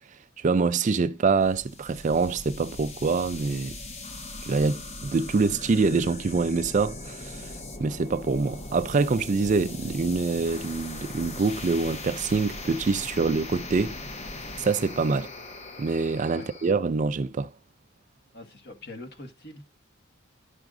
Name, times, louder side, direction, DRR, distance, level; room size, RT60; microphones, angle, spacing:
voice 1, 0.4-3.7 4.4-7.5 7.8-14.0 14.6-15.3 15.8-17.5, right 4 dB, 35° right, 0.4 m, -25 dB
sound 1, 1.4-16.7, left 2 dB, 30° left, 1.0 m, -40 dB
voice 2, 18.3-19.7, left 1 dB, 50° left, 1.8 m, -43 dB
11.5 x 5.9 x 2.5 m
head